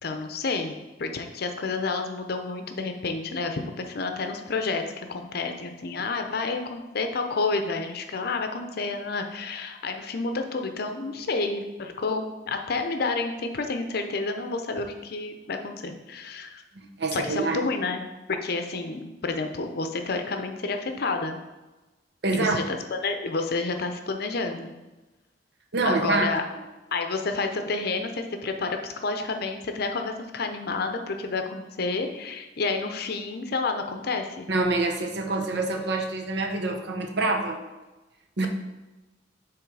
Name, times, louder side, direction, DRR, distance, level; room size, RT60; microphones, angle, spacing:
voice 1, 0.0-16.6 17.1-21.4 22.3-24.7 25.8-26.4 26.9-34.5 38.4-38.5, left 3 dB, 60° left, 6 dB, 0.6 m, -30 dB
voice 2, 16.7-17.7 22.2-22.6 25.7-26.3 34.5-37.6 38.4-38.5, right 3 dB, 65° right, 3 dB, 0.8 m, -26 dB
7.1 x 3.2 x 4.7 m, 1.1 s
head